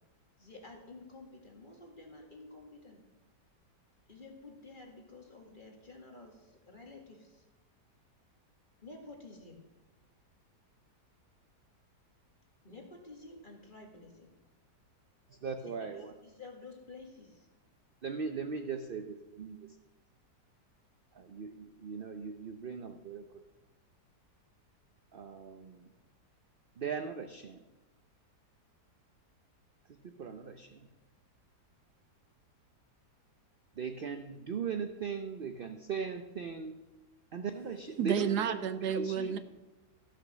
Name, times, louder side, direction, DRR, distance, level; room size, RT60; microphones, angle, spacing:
voice 1, 0.4-3.0 4.1-7.4 8.8-9.6 12.6-14.3 15.5-17.5, left 3 dB, 30° left, 2.0 m, -51 dB
voice 2, 15.4-16.1 18.0-19.6 21.1-23.3 25.1-25.8 26.8-27.6 30.2-30.9 33.8-36.7 37.3-38.6 38.9-39.4, right 6 dB, 55° right, 0.6 m, -38 dB
voice 3, 38.0-39.4, right 8 dB, 75° right, 1.3 m, -31 dB
14.5 x 6.5 x 6.2 m
omnidirectional pair, 1.8 m